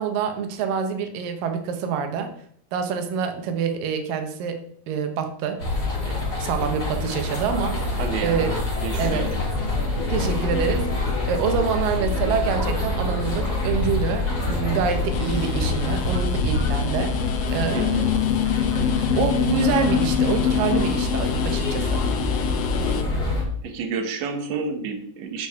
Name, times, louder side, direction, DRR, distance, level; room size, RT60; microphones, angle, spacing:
voice 1, 0.0-2.3 2.7-5.6 6.0-7.8 8.2-8.5 9.0-9.3 10.1-10.9 11.2-17.1 17.5-17.9 19.2-22.0, right 7 dB, 85° right, 6 dB, 2.7 m, -26 dB
sound 1, 5.6-23.4, left 2 dB, 30° left, 3.7 m, -25 dB
voice 2, 8.0-8.5 8.8-9.3 17.7-18.1 23.6-25.5, right 5 dB, 60° right, 5 dB, 2.2 m, -29 dB
sound 2, 15.1-23.0, left 11 dB, 85° left, 1.5 m, -26 dB
12.0 x 6.2 x 3.6 m, 0.63 s
omnidirectional pair, 3.8 m